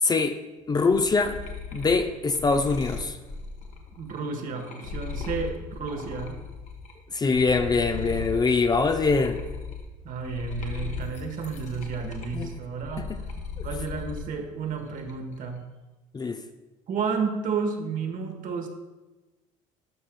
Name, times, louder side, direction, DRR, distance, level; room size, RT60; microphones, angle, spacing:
voice 1, 0.0-0.4 0.7-1.4 1.7-3.2 7.1-9.4 12.3-12.5 16.1-16.4, left 4 dB, 25° left, 7 dB, 0.5 m, -23 dB
sound 1, 0.9-6.9 7.3-14.3 14.7-15.3, left 5 dB, 45° left, 1.1 m, -37 dB
voice 2, 4.0-6.4 10.0-13.1 13.6-15.6 16.9-18.7, right 5 dB, 55° right, 4 dB, 1.2 m, -31 dB
12.5 x 5.6 x 2.2 m, 1.1 s
hypercardioid pair, 70°, 17 cm